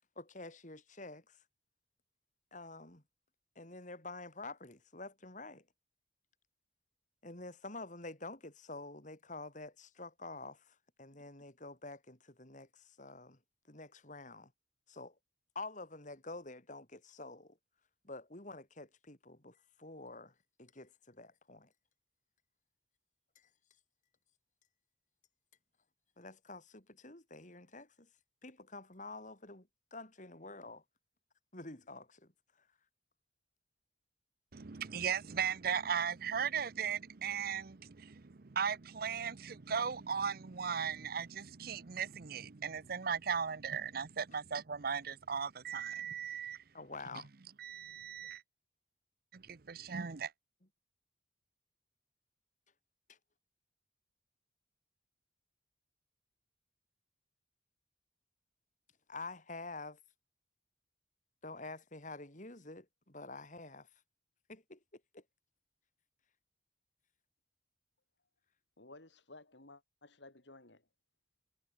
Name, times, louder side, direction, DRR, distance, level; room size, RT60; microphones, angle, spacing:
voice 1, 0.2-1.4 2.5-3.0 3.6-5.6 7.2-13.4 13.7-14.5 14.9-15.1 15.5-17.6 18.0-20.3 20.6-21.7 26.2-28.1 28.4-30.8 31.5-32.3 46.7-47.3 53.1-53.2 59.1-60.0 61.4-63.9 64.5-65.2, left 3 dB, 45° left, 4.2 m, -48 dB
voice 2, 34.5-46.6 47.6-48.4 49.3-50.3, right 7 dB, 55° right, 0.7 m, -37 dB
voice 3, 68.8-70.9, left 2 dB, 75° left, 3.8 m, -56 dB
head